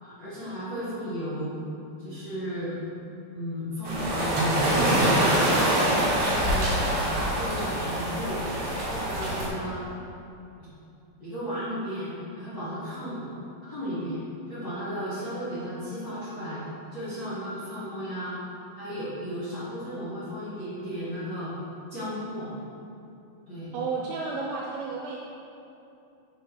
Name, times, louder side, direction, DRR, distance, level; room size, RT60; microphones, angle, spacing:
voice 1, 0.0-1.6 2.0-2.7 3.3-6.0 6.4-8.6 8.9-9.8 10.6-10.7 11.2-13.3 13.6-14.2 14.5-16.6 16.9-18.4 18.7-21.5 21.9-22.5 23.5-23.7, equal, 80° left, -13 dB, 0.8 m, -34 dB
sound 1, 3.8-9.5, right 1 dB, 60° right, 1.8 m, -25 dB
voice 2, 23.7-25.2, right 4 dB, 80° right, -2 dB, 2.4 m, -32 dB
6.0 x 5.6 x 4.7 m, 2.7 s
omnidirectional pair, 4.5 m